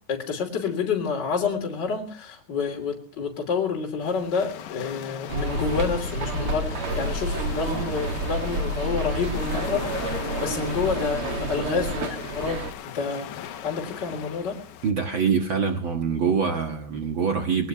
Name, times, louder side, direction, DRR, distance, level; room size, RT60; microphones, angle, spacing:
voice 1, 0.1-9.9 10.4-14.6, left 5 dB, 30° left, 1 dB, 3.3 m, -28 dB
sound 1, 4.0-14.9, left 10 dB, 70° left, 2.0 m, -39 dB
sound 2, 5.3-12.7, right 2 dB, 45° right, 2.0 m, -29 dB
voice 2, 14.8-17.7, right 6 dB, 85° right, 4 dB, 1.0 m, -24 dB
21.0 x 19.0 x 3.0 m, 0.39 s
omnidirectional pair, 4.7 m